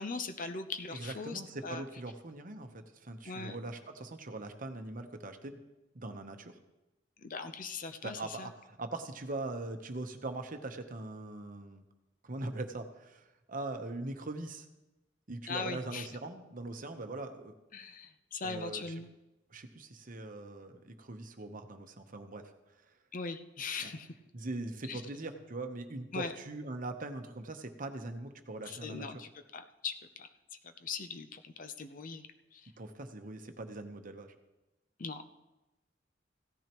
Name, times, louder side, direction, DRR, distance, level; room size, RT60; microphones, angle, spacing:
voice 1, 0.0-1.8 3.2-3.6 7.2-8.5 15.5-16.1 17.7-19.1 23.1-24.1 24.9-25.0 26.1-26.3 28.7-30.3 30.8-32.2 32.5-32.7 35.0-35.2, left 4 dB, 45° left, 8 dB, 0.7 m, -40 dB
voice 2, 0.9-5.6 5.9-6.6 8.0-11.8 12.2-14.7 15.3-17.5 18.4-18.9 19.5-22.5 23.8-24.0 24.3-29.1 32.8-34.4, right 2 dB, 45° right, 6 dB, 1.0 m, -41 dB
16.5 x 13.5 x 3.0 m, 1.0 s
head